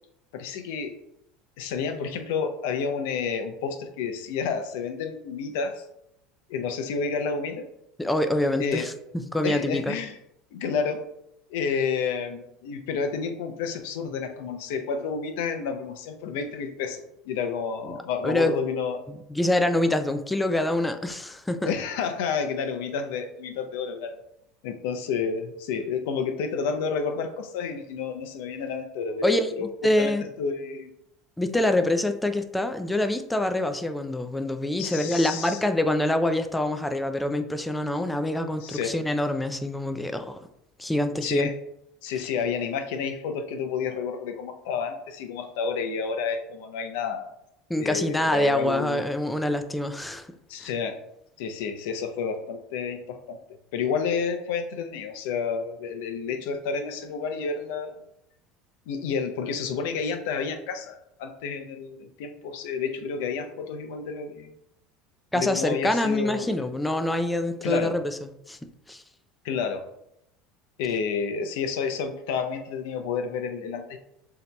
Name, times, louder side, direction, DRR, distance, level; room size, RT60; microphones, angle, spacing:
voice 1, 0.3-0.9 1.6-5.8 6.5-7.7 8.6-8.9 9.4-10.2 10.5-11.0 11.5-19.0 21.6-24.2 24.6-30.9 34.8-35.6 38.6-38.9 41.2-41.5 42.0-47.3 47.8-49.0 50.5-51.0 51.4-53.4 53.7-58.0 58.9-64.5 65.3-66.5 67.6-67.9 69.4-69.8 70.8-74.0, left 5 dB, 80° left, 6 dB, 0.6 m, -30 dB
voice 2, 8.0-10.0 17.9-18.0 18.2-18.6 19.1-21.7 29.2-29.5 29.8-30.2 31.4-40.4 40.8-41.5 47.7-50.3 50.6-50.7 65.3-68.6 68.9-69.0, left 1 dB, 5° left, 8 dB, 0.4 m, -25 dB
6.8 x 2.9 x 2.2 m, 0.81 s
supercardioid pair, 115°, 0 cm